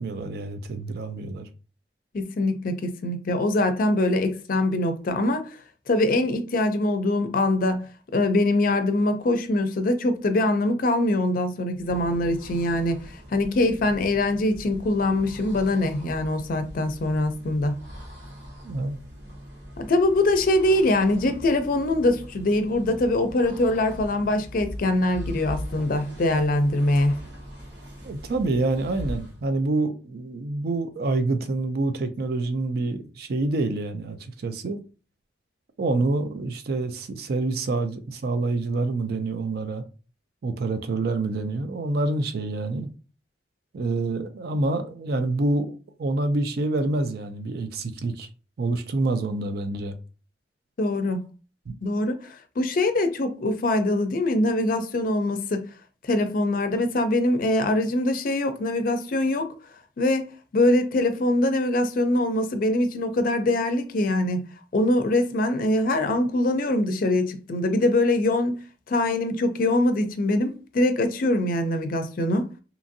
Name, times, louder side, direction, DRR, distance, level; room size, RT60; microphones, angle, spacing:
voice 1, 0.0-1.5 18.6-19.0 28.0-34.8 35.8-39.8 40.4-42.9 43.7-48.3 48.6-49.9, right 2 dB, 60° right, 0.4 m, -27 dB
voice 2, 2.1-5.5 5.9-7.9 8.1-13.0 13.3-17.8 19.8-27.2 50.8-51.2 51.8-55.7 56.0-59.5 60.0-64.4 64.7-68.6 68.9-72.5, left 1 dB, 50° left, 0.4 m, -23 dB
sound 1, 11.7-29.5, equal, 85° right, 1.2 m, -41 dB
2.8 x 2.5 x 2.6 m
head